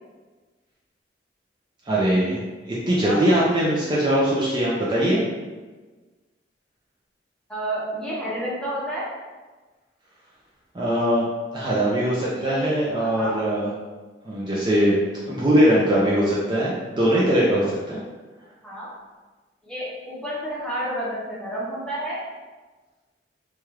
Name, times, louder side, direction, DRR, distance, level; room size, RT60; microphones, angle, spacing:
voice 1, 1.8-2.4 2.7-5.2 10.7-11.3 11.5-13.7 14.2-15.0 15.3-18.0, equal, 25° right, -6 dB, 0.4 m, -21 dB
voice 2, 2.9-3.2 7.5-9.1 12.3-13.4 18.6-18.9 19.6-22.2, equal, 5° left, -8 dB, 0.8 m, -30 dB
3.2 x 2.3 x 2.9 m, 1.3 s
head